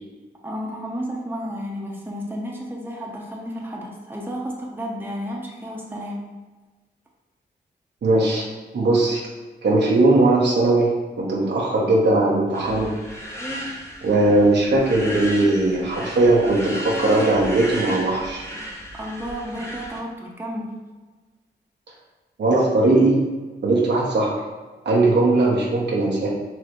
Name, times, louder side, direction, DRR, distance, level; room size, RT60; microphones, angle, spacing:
voice 1, 0.4-6.2 18.9-20.7, equal, 10° right, -2 dB, 1.0 m, -32 dB
voice 2, 8.0-8.5 8.7-9.2 9.6-10.9 11.2-12.9 14.0-18.5 22.4-23.2 23.6-24.3 24.8-26.3, right 2 dB, 75° right, -3 dB, 1.1 m, -19 dB
sound 1, 12.5-20.0, equal, 15° left, 1.0 m, -34 dB
4.7 x 3.1 x 3.2 m, 1.3 s
cardioid pair, 50°, 18 cm